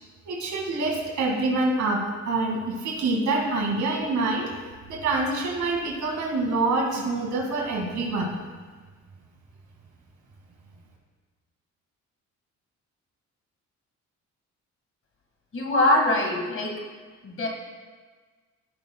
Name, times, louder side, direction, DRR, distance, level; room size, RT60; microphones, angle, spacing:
voice 1, 0.2-4.5 4.9-8.3, right 3 dB, 70° right, 0 dB, 2.2 m, -26 dB
voice 2, 15.5-16.7 17.2-17.5, left 1 dB, 45° left, 0 dB, 2.0 m, -22 dB
15.5 x 6.0 x 2.3 m, 1.4 s
cardioid pair, 85°, 30 cm